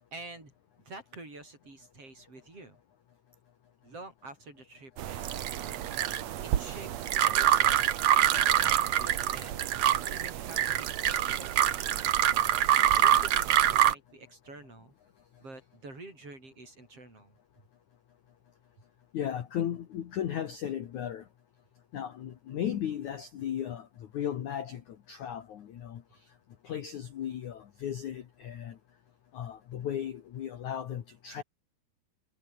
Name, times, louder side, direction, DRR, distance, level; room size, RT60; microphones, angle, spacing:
voice 1, 0.1-2.8 3.8-5.5 6.4-7.9 8.6-9.6 10.1-11.7 12.9-14.9 15.4-17.7, right 2 dB, 30° right, 8.6 m, -48 dB
sound 1, 5.0-13.9, right 11 dB, 75° right, 1.5 m, -26 dB
voice 2, 19.1-21.2 21.9-23.9 24.1-24.8 25.1-26.0 26.6-28.7 29.3-31.4, left 10 dB, 55° left, 2.3 m, -35 dB
omnidirectional pair, 5.0 m